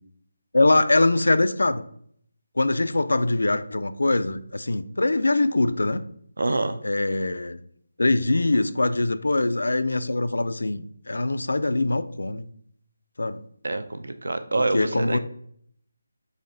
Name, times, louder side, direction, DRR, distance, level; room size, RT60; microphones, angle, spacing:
voice 1, 0.5-1.8 2.6-6.0 6.8-7.6 8.0-12.5 13.2-13.4 14.7-15.2, left 2 dB, 85° left, 13 dB, 0.3 m, -23 dB
voice 2, 6.4-6.8 13.6-15.2, right 2 dB, 80° right, 10 dB, 0.5 m, -26 dB
4.2 x 3.2 x 3.8 m, 0.65 s
figure-of-eight pair, 165°, 0 cm